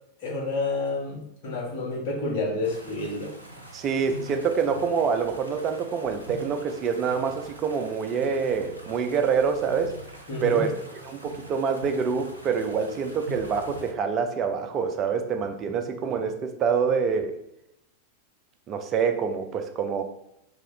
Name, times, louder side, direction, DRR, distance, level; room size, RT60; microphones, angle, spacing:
voice 1, 0.2-3.3 10.3-10.6, left 2 dB, 50° left, -3 dB, 1.3 m, -29 dB
sound 1, 2.6-13.9, right 1 dB, 85° right, 0.6 m, -44 dB
voice 2, 3.7-9.9 10.4-10.7 11.0-17.3 18.7-20.0, right 6 dB, 30° right, 5 dB, 0.4 m, -26 dB
3.1 x 2.8 x 3.7 m, 0.80 s
figure-of-eight pair, 90°, 0 cm